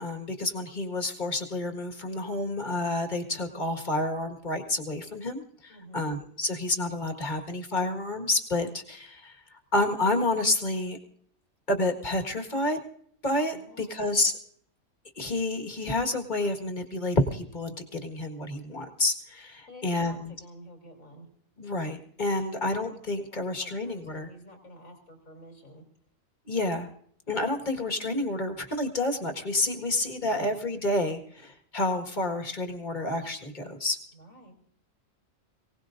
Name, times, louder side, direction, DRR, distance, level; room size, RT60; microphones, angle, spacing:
voice 1, 0.0-11.0 11.7-12.8 13.2-14.3 15.2-20.3 21.6-24.3 26.5-26.9 27.3-34.0, left 2 dB, 35° left, 4 dB, 1.9 m, -29 dB
voice 2, 5.7-6.1 13.5-14.0 19.7-21.3 22.2-22.6 23.1-25.8 30.2-30.6 34.1-34.5, equal, 90° left, 2 dB, 3.7 m, -50 dB
24.0 x 18.0 x 2.6 m, 0.63 s
omnidirectional pair, 1.4 m